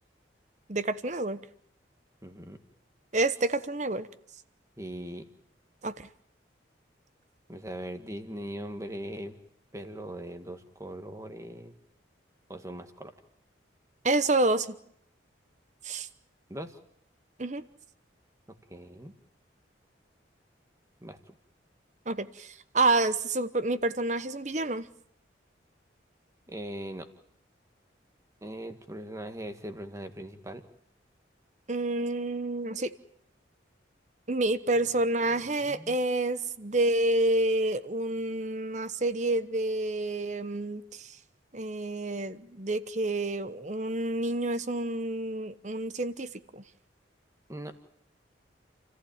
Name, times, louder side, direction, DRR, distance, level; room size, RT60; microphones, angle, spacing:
voice 1, 0.7-1.4 3.1-4.1 5.8-6.1 14.0-14.7 15.8-16.1 17.4-17.6 22.1-24.9 31.7-32.9 34.3-41.1 41.5-46.6, right 2 dB, 40° right, 14 dB, 1.0 m, -28 dB
voice 2, 2.2-2.6 4.8-5.2 7.5-9.3 9.7-11.7 12.5-13.1 16.5-16.7 18.7-19.1 21.0-21.3 26.5-27.1 28.4-30.6 35.6-36.0 47.5-47.7, right 1 dB, 15° right, 8 dB, 1.7 m, -40 dB
29.0 x 15.0 x 8.8 m, 0.71 s
head